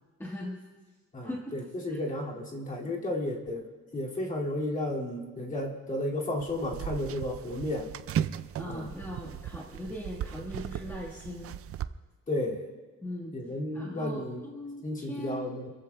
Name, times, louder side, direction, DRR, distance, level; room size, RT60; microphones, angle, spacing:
voice 1, 0.2-0.6 1.2-1.5 1.9-2.0 8.6-11.6 13.0-13.3 13.7-15.5, equal, 10° left, -3 dB, 1.4 m, -39 dB
voice 2, 1.1-3.7 3.9-7.9 8.6-8.9 12.3-12.6 13.3-14.4 14.8-15.7, left 1 dB, 25° left, -2 dB, 2.3 m, -33 dB
sound 1, 6.4-11.9, right 10 dB, 45° right, 0.4 m, -37 dB
28.0 x 15.0 x 2.2 m, 1.4 s
cardioid pair, 160°, 32 cm